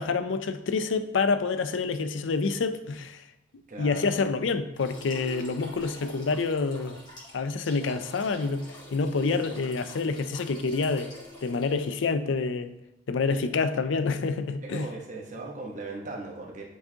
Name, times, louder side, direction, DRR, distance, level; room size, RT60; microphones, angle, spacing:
voice 1, 0.0-3.2 3.8-7.0 7.3-11.1 11.4-12.7 13.1-14.9, left 4 dB, 70° left, 0.4 m, -27 dB
voice 2, 3.7-4.3 9.2-9.5 14.6-16.6, right 2 dB, 40° right, 1.1 m, -38 dB
sound 1, 4.7-11.9, left 1 dB, 25° left, 2.1 m, -47 dB
10.5 x 4.6 x 2.8 m
head